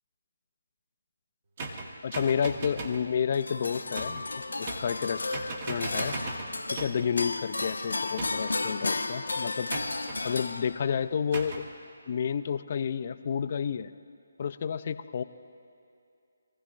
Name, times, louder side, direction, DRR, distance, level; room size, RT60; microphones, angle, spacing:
sound 1, 1.6-3.1 3.9-4.3 4.7-5.1 5.3-7.1 8.2-8.6 9.7-10.2 11.3-11.7, right 3 dB, 40° right, 1.4 m, -38 dB
voice 1, 2.0-4.2 4.6-5.2 5.7-6.1 6.8-9.7 10.2-11.7 12.1-13.9 14.4-15.2, left 7 dB, 45° left, 12 dB, 0.5 m, -30 dB
sound 2, 3.3-11.0, left 3 dB, 75° left, 0.9 m, -33 dB
23.5 x 15.5 x 2.5 m, 2.5 s
figure-of-eight pair, 150°, 0 cm